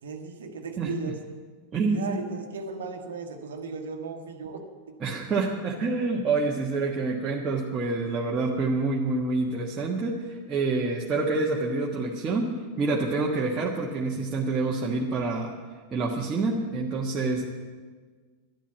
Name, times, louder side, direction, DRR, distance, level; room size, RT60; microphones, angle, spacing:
voice 1, 0.0-1.2 1.9-5.2 13.2-13.3, right 5 dB, 65° right, 5 dB, 1.4 m, -36 dB
voice 2, 1.7-2.2 5.0-15.5 15.9-17.5, right 3 dB, 20° right, -3 dB, 1.5 m, -27 dB
11.5 x 11.5 x 7.0 m, 1.5 s
figure-of-eight pair, 90°, 0 cm